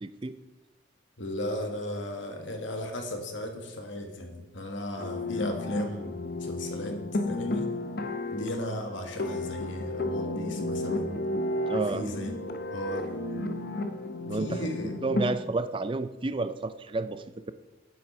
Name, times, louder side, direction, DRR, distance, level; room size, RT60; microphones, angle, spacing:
voice 1, 0.0-0.3 11.7-12.1 14.2-14.7 15.0-17.5, right 3 dB, 25° right, 12 dB, 0.4 m, -31 dB
voice 2, 1.2-7.0 7.3-7.7 8.3-11.2 11.9-13.2 14.1-14.9, left 1 dB, 70° left, 4 dB, 1.5 m, -36 dB
sound 1, 5.0-15.3, left 2 dB, 50° left, 0.7 m, -32 dB
8.1 x 7.7 x 5.5 m, 1.0 s
head